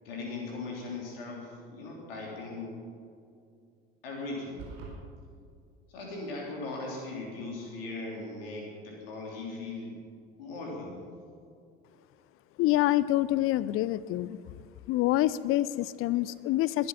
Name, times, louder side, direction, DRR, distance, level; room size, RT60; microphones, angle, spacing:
voice 1, 0.0-2.8 4.0-4.6 5.9-10.0 10.4-11.1, left 3 dB, 70° left, -1 dB, 3.5 m, -39 dB
sound 1, 4.6-5.0, right 5 dB, 55° right, 4.6 m, -42 dB
voice 2, 12.6-14.4 14.9-16.9, left 15 dB, 45° left, 18 dB, 0.6 m, -26 dB
21.0 x 12.0 x 5.7 m, 2.3 s
figure-of-eight pair, 65°, 31 cm